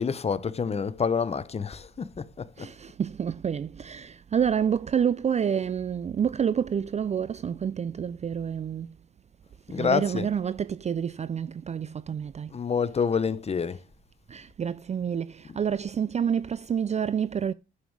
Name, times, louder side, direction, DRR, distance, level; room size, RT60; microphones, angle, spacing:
voice 1, 0.0-2.7 9.7-10.3 12.5-13.8, left 6 dB, 30° left, 0.9 m, -28 dB
voice 2, 2.6-8.9 9.7-12.5 14.3-17.5, right 8 dB, 35° right, 0.5 m, -28 dB
11.5 x 7.3 x 4.8 m
cardioid pair, 90°, 20 cm